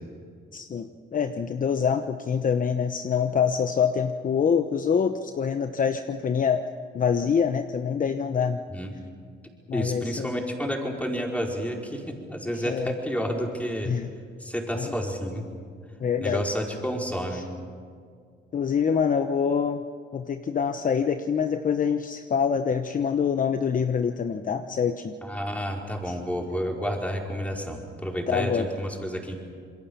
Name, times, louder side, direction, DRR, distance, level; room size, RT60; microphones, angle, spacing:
voice 1, 0.5-6.6 6.9-8.6 9.7-10.3 12.5-12.9 13.8-14.1 14.7-14.9 16.0-16.5 17.3-17.4 18.5-19.8 20.1-25.1 26.1-26.2 28.3-28.7, left 7 dB, 40° left, 8 dB, 0.9 m, -25 dB
voice 2, 9.7-13.9 14.4-15.4 16.2-17.4 25.2-29.4, equal, 5° left, 0 dB, 4.6 m, -30 dB
27.5 x 22.0 x 7.1 m, 2.1 s
cardioid pair, 90°, 20 cm